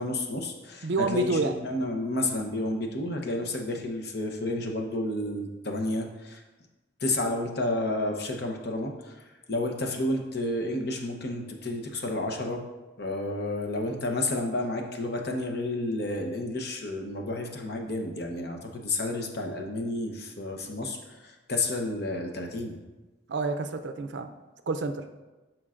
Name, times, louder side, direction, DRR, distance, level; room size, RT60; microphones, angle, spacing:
voice 1, 0.0-6.4 7.0-12.6 13.0-22.8, left 2 dB, 55° left, 3 dB, 0.8 m, -31 dB
voice 2, 0.8-1.5 23.3-24.3 24.7-25.0, right 3 dB, 65° right, 8 dB, 0.5 m, -28 dB
11.5 x 4.6 x 2.5 m, 1.2 s
head